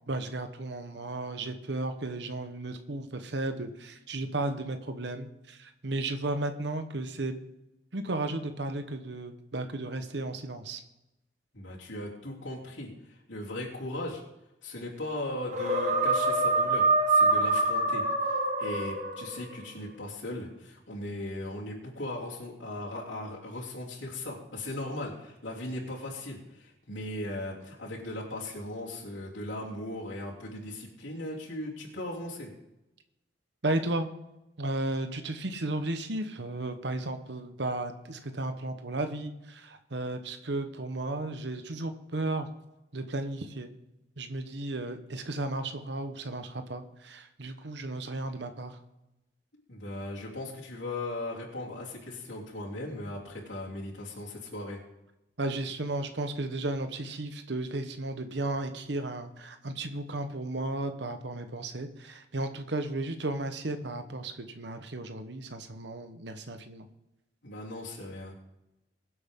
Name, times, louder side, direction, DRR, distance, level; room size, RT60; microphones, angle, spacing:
voice 1, 0.1-7.3 7.9-10.8 33.6-34.1 34.6-42.5 42.9-43.7 44.2-48.8 55.4-66.9, right 2 dB, 65° right, 8 dB, 1.0 m, -34 dB
voice 2, 11.5-14.2 14.6-32.5 49.7-54.8 67.4-68.3, left 1 dB, 85° left, -5 dB, 3.2 m, -38 dB
sound 1, 15.5-19.6, right 2 dB, 40° right, 1.4 m, -25 dB
22.5 x 8.0 x 3.7 m, 0.94 s
head